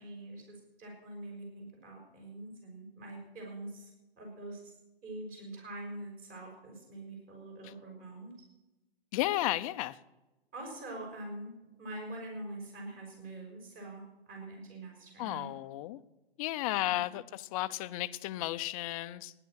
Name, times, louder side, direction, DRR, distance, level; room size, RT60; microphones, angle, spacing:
voice 1, 0.0-4.7 5.0-8.3 10.5-15.6 16.6-17.2, right 2 dB, 25° right, 0 dB, 6.0 m, -45 dB
voice 2, 9.1-10.0 15.2-16.0 16.4-19.3, left 16 dB, 35° left, 12 dB, 0.7 m, -33 dB
15.5 x 11.0 x 6.5 m, 1.0 s
hypercardioid pair, 140°, 32 cm